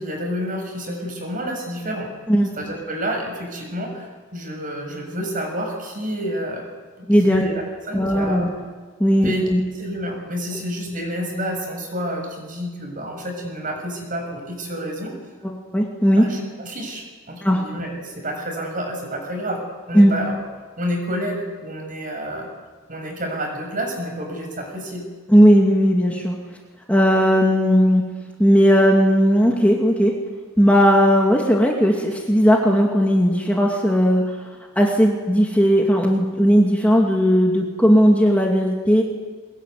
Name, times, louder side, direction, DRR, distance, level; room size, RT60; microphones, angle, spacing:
voice 1, 0.0-2.1 2.6-6.7 7.0-8.5 9.2-9.5 9.7-15.1 16.2-19.6 19.9-20.4 20.8-22.5 22.9-25.1, equal, 40° right, 3 dB, 6.8 m, -29 dB
voice 2, 7.1-7.4 7.9-8.5 9.0-9.6 15.4-16.2 17.4-17.6 19.9-20.1 25.3-26.4 26.9-28.0 28.4-30.1 30.6-34.2 34.8-39.0, equal, 5° left, -1 dB, 2.5 m, -16 dB
23.0 x 21.0 x 9.6 m, 1.4 s
head